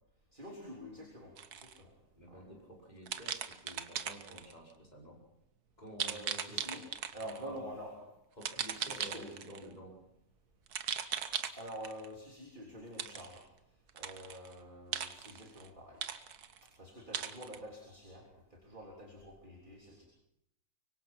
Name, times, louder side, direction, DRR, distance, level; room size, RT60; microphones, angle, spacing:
voice 1, 0.3-1.9 2.3-2.4 6.0-6.8 7.1-8.0 8.7-9.4 11.6-13.4 14.0-16.0 16.8-20.1, equal, 30° right, 0 dB, 3.8 m, -47 dB
sound 1, 1.4-1.8 3.1-4.5 6.0-7.4 8.4-9.7 10.7-12.1 13.0-13.4 13.9-14.5 14.9-15.7 16.0-16.7 17.1-17.6, right 8 dB, 65° right, 1.5 m, -38 dB
voice 2, 2.2-5.2 5.8-6.2 6.5-6.9 7.2-7.7 8.4-10.0, equal, 25° left, -1 dB, 5.3 m, -51 dB
24.5 x 23.5 x 6.0 m, 0.82 s
omnidirectional pair, 1.8 m